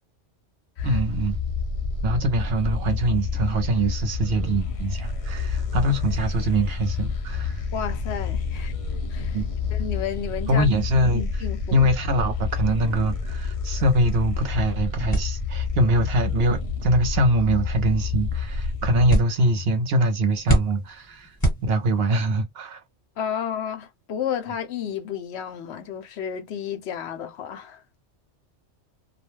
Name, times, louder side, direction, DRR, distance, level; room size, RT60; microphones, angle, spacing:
sound 1, 0.8-19.2, left 5 dB, 50° left, 0.4 m, -29 dB
voice 1, 0.8-1.4 2.0-7.6 9.3-9.5 10.5-11.2 11.7-21.4 21.6-22.8, right 1 dB, 65° right, 0.8 m, -23 dB
voice 2, 7.7-8.7 9.1-9.4 9.7-10.6 11.1-11.9 23.2-27.8, left 8 dB, 70° left, 0.8 m, -32 dB
sound 2, 15.1-22.2, right 1 dB, 20° left, 1.4 m, -29 dB
2.3 x 2.1 x 3.1 m
omnidirectional pair, 1.2 m